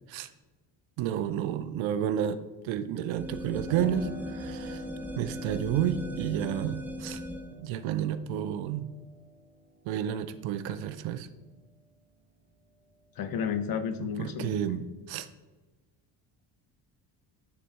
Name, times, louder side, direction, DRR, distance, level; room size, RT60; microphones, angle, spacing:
voice 1, 1.0-4.8 5.2-7.2 7.6-8.9 9.9-11.3 14.0-15.3, right 10 dB, 70° right, 13 dB, 0.6 m, -31 dB
sound 1, 3.2-7.6, left 1 dB, 5° right, 0.6 m, -38 dB
Piano, 3.7-12.1 12.5-13.6, equal, 20° right, 1.4 m, -49 dB
voice 2, 13.2-14.8, left 7 dB, 45° left, 10 dB, 0.8 m, -32 dB
9.5 x 4.0 x 3.4 m, 1.2 s
supercardioid pair, 65°, 48 cm